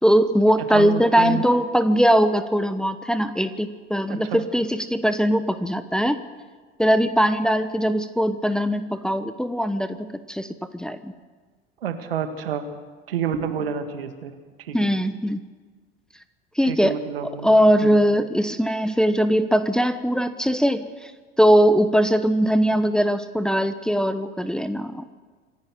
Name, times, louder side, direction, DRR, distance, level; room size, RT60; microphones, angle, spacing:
voice 1, 0.0-6.2 6.8-11.1 14.7-15.4 16.6-16.9 17.4-21.1 21.4-25.0, equal, ahead, 10 dB, 1.0 m, -20 dB
voice 2, 0.7-1.4 4.1-4.4 11.8-12.6 13.1-14.3 14.6-14.8 16.6-17.5 17.8-18.0, right 8 dB, 70° right, 8 dB, 1.8 m, -29 dB
26.5 x 11.5 x 9.4 m, 1.5 s
figure-of-eight pair, 70°, 30 cm